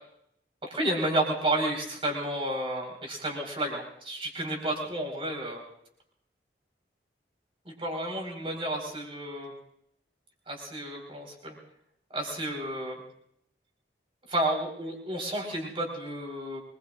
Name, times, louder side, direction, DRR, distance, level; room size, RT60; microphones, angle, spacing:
voice 1, 0.6-5.6 7.6-9.5 10.5-11.6 12.1-13.0 14.3-16.6, right 1 dB, 30° right, 1 dB, 4.6 m, -31 dB
25.5 x 21.5 x 2.5 m, 0.72 s
head